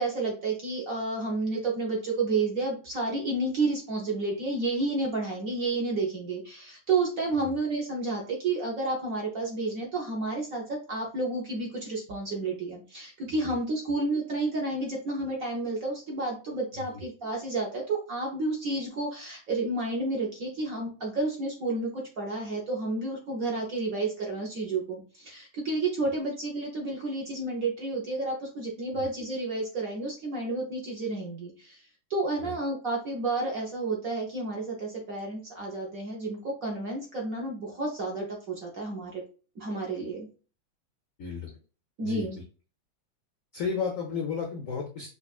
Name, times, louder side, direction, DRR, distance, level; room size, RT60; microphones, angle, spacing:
voice 1, 0.0-39.2 39.6-40.3 42.0-42.4, right 2 dB, 60° right, -2 dB, 0.9 m, -31 dB
voice 2, 41.2-41.6 42.0-42.3 43.5-45.1, left 6 dB, 80° left, 1 dB, 0.7 m, -34 dB
5.2 x 2.3 x 2.4 m, 0.36 s
omnidirectional pair, 2.2 m